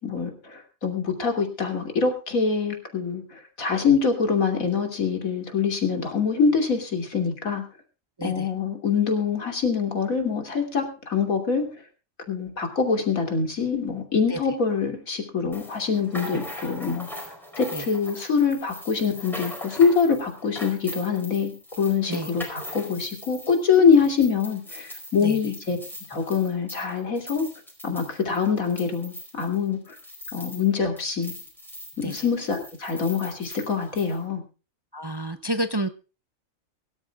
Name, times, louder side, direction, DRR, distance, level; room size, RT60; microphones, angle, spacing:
voice 1, 0.0-7.6 8.2-11.7 12.3-17.1 17.6-25.8 26.1-27.4 27.8-30.0 30.3-31.3 32.0-34.4, left 5 dB, 85° left, 5 dB, 3.2 m, -24 dB
sound 1, 15.5-30.7 31.0-34.2, left 1 dB, ahead, 4.6 m, -41 dB
voice 2, 34.9-35.9, right 1 dB, 25° right, 9 dB, 0.6 m, -29 dB
23.0 x 12.5 x 2.3 m, 0.32 s
omnidirectional pair, 1.4 m